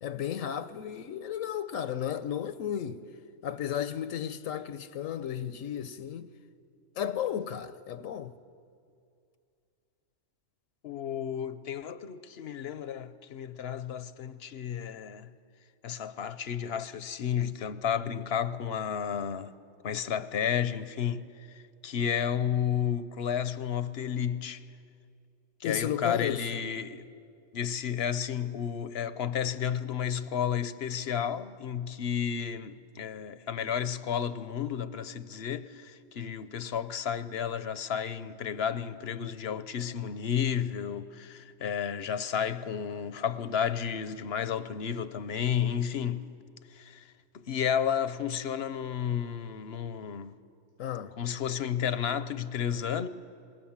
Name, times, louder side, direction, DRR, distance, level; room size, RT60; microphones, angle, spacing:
voice 1, 0.0-3.0 3.4-6.3 7.0-8.3 25.6-26.6 50.8-51.1, left 9 dB, 80° left, 1.1 m, -34 dB
voice 2, 10.8-15.3 15.8-19.5 19.8-24.7 25.6-27.1 27.5-46.3 46.7-50.3 51.2-53.1, left 8 dB, 55° left, 0.9 m, -32 dB
27.0 x 20.5 x 7.3 m
omnidirectional pair, 1.4 m